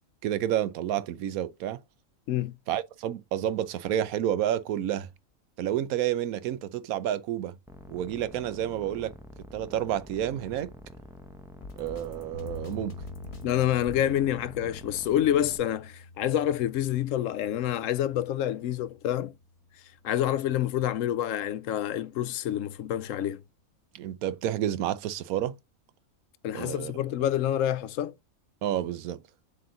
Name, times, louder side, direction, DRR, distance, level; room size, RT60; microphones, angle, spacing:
voice 1, 0.2-1.8 2.7-5.1 5.6-7.6 7.9-9.1 9.5-10.7 11.8-13.0 23.9-25.6 26.5-26.9 28.6-29.2, right 11 dB, 85° right, 1.1 m, -30 dB
sound 1, 7.7-15.6, equal, 5° right, 0.5 m, -47 dB
Drum kit, 11.6-14.0, left 3 dB, 50° left, 1.5 m, -45 dB
sound 2, 12.3-20.4, left 2 dB, 65° right, 1.8 m, -47 dB
voice 2, 13.4-19.3 20.0-23.4 26.4-28.1, left 11 dB, 70° left, 0.9 m, -27 dB
7.7 x 3.5 x 3.9 m
omnidirectional pair, 1.5 m